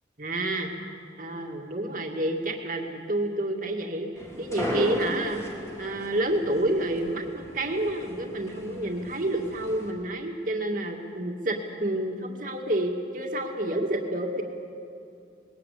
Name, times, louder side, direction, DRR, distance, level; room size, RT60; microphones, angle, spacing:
voice 1, 0.2-0.7 1.2-4.1 4.4-14.4, right 1 dB, 45° right, 2 dB, 2.3 m, -29 dB
sound 1, 4.2-9.9, equal, 15° left, 3.2 m, -36 dB
21.0 x 18.5 x 8.5 m, 2.5 s
head